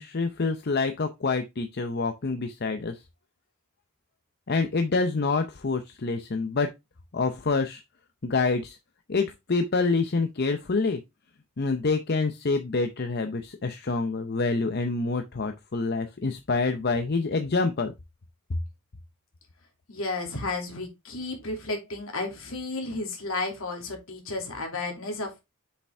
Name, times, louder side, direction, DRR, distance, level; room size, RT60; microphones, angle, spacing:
voice 1, 0.0-3.0 4.5-6.7 7.1-7.8 8.2-8.8 9.1-11.0 11.6-17.9 18.5-18.6, left 3 dB, 50° left, 0.6 m, -27 dB
voice 2, 19.9-25.4, left 2 dB, 70° left, 2.6 m, -33 dB
6.7 x 5.2 x 3.4 m
head